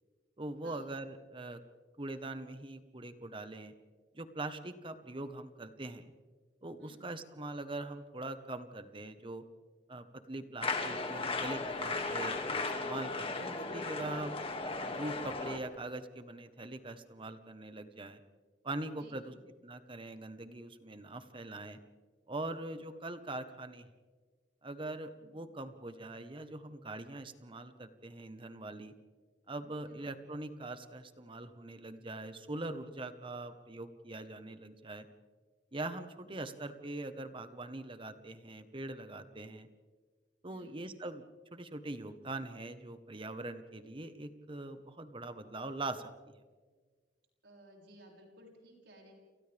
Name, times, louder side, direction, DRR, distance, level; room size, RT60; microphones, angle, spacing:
voice 1, 0.4-1.6 2.0-3.7 4.1-6.1 6.6-9.4 9.9-14.4 14.9-18.2 18.6-19.3 19.6-21.8 22.3-23.9 24.6-28.9 29.5-35.1 35.7-39.7 40.4-41.2 41.5-46.3, right 2 dB, 30° right, 9 dB, 1.3 m, -42 dB
sound 1, 10.6-15.6, left 3 dB, 35° left, 2.3 m, -36 dB
voice 2, 19.0-19.5 25.2-25.5 29.8-30.1 40.5-40.8 47.4-49.1, right 1 dB, 75° right, -1 dB, 6.6 m, -58 dB
29.5 x 29.0 x 3.5 m, 1.5 s
head